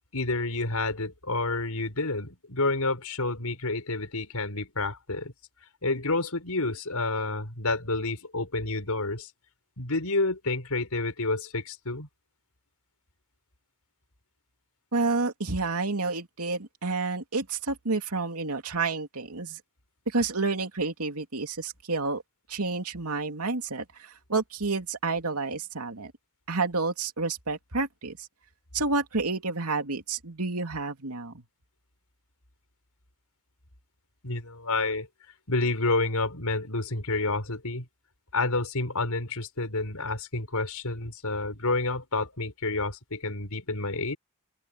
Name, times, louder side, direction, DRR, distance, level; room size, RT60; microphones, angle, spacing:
voice 1, 0.1-5.3 5.8-9.3 9.8-12.1 34.2-35.1 35.5-37.9 38.3-44.2, left 3 dB, 85° left, 5.5 m, -29 dB
voice 2, 14.9-19.6 20.1-22.2 22.5-26.1 26.5-28.3 28.7-31.4, right 3 dB, 80° right, 2.8 m, -29 dB
open air
head